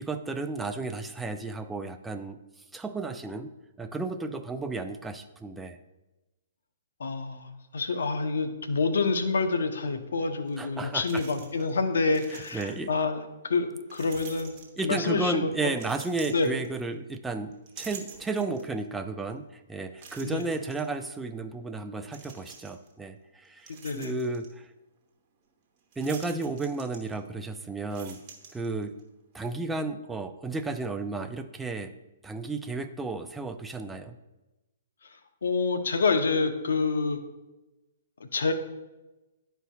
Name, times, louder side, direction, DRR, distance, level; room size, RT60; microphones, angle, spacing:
voice 1, 0.0-2.4 2.7-3.5 3.8-5.8 10.6-11.2 12.3-12.9 14.8-24.7 26.0-28.2 28.5-29.0 29.3-31.9 32.2-34.2, right 3 dB, 10° right, 7 dB, 0.4 m, -33 dB
voice 2, 7.0-14.5 14.8-15.7 16.3-16.5 20.2-20.4 23.7-24.1 35.4-37.2 38.2-38.5, left 4 dB, 75° left, 7 dB, 0.7 m, -27 dB
sound 1, 10.5-10.6 11.0-11.8 12.0-13.0 13.9-15.1 15.7-17.1 17.5-18.8 19.3-19.4 20.0-20.8 22.1-22.9 23.4-24.5 25.9-27.4 27.8-29.0, right 6 dB, 35° right, 1.2 m, -47 dB
11.0 x 4.6 x 2.3 m, 1.1 s
hypercardioid pair, 130°, 0 cm